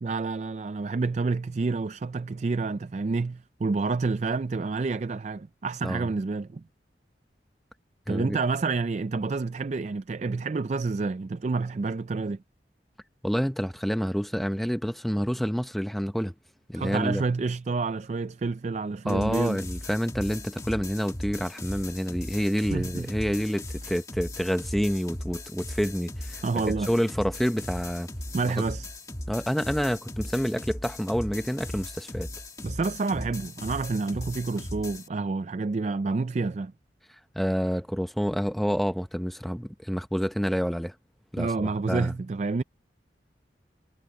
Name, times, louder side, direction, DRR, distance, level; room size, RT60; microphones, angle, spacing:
voice 1, 0.0-6.6 8.1-12.4 16.7-19.6 22.7-23.3 26.4-26.9 28.3-28.9 32.6-36.7 41.4-42.6, right 3 dB, 40° right, 0.4 m, -29 dB
voice 2, 8.1-8.4 13.2-16.3 16.7-17.2 19.1-28.1 28.4-28.6 29.3-32.3 37.4-40.9 41.3-42.1, equal, ahead, 0.7 m, -28 dB
sound 1, 19.1-35.1, left 1 dB, 20° left, 1.4 m, -38 dB
head